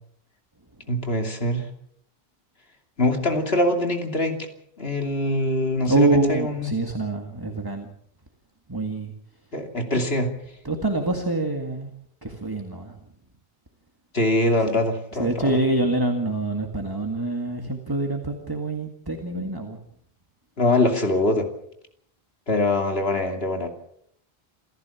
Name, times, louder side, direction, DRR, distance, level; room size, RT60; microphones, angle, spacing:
voice 1, 0.9-1.6 3.0-4.4 4.8-6.7 9.5-10.3 14.1-15.6 20.6-21.5 22.5-23.7, left 1 dB, 70° left, 4 dB, 3.1 m, -23 dB
voice 2, 5.8-7.9 8.7-9.1 9.9-10.0 10.6-11.9 12.2-13.0 14.6-14.8 15.1-19.8, right 2 dB, 20° right, 4 dB, 1.9 m, -25 dB
28.0 x 14.0 x 7.2 m, 0.71 s
omnidirectional pair, 1.1 m